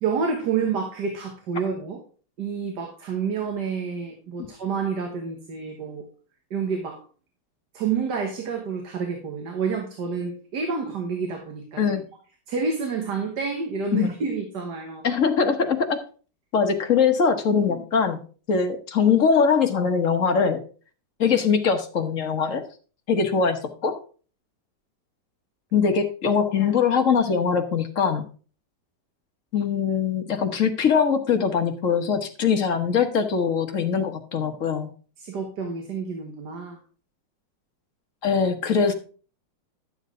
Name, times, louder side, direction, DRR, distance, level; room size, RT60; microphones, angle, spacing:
voice 1, 0.0-2.0 2.4-6.0 6.5-7.0 7.7-11.8 12.5-15.1 35.2-36.8, right 5 dB, 65° right, 3 dB, 1.9 m, -29 dB
voice 2, 15.0-16.0 16.5-18.2 18.5-20.6 21.2-22.6 23.1-24.0 25.7-28.2 29.5-34.9 38.2-38.9, left 6 dB, 45° left, 6 dB, 1.4 m, -22 dB
12.0 x 7.2 x 3.7 m, 0.38 s
omnidirectional pair, 2.0 m